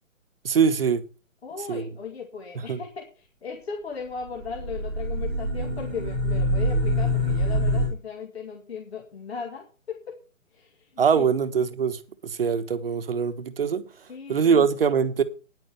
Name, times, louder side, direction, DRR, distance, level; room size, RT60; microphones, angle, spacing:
voice 1, 0.4-1.0 1.7-1.8 2.7-2.8 11.0-13.8 14.3-15.2, right 6 dB, 45° right, 1.3 m, -23 dB
voice 2, 1.4-10.2 10.5-11.4 14.1-14.7, left 6 dB, 50° left, 2.2 m, -37 dB
sound 1, 4.3-7.9, left 1 dB, 5° left, 0.7 m, -25 dB
10.0 x 9.0 x 6.8 m
hypercardioid pair, 170°, 41 cm